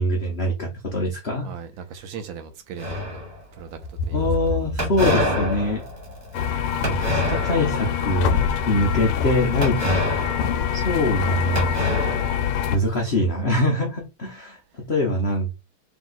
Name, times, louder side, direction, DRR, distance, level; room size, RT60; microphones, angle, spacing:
voice 1, 0.0-1.5 4.1-5.8 6.8-8.3 8.7-10.1 10.7-11.9 12.7-15.5, left 1 dB, 65° left, 0.6 m, -23 dB
voice 2, 1.4-3.2 3.5-4.3, right 6 dB, 75° right, 1.3 m, -38 dB
sound 1, 2.8-3.6 4.8-7.9 8.3-8.6 9.6-11.2 11.5-12.9, equal, 20° right, 1.4 m, -27 dB
sound 2, 6.3-12.8, left 8 dB, 80° left, 1.5 m, -25 dB
3.5 x 2.9 x 3.9 m
omnidirectional pair, 2.4 m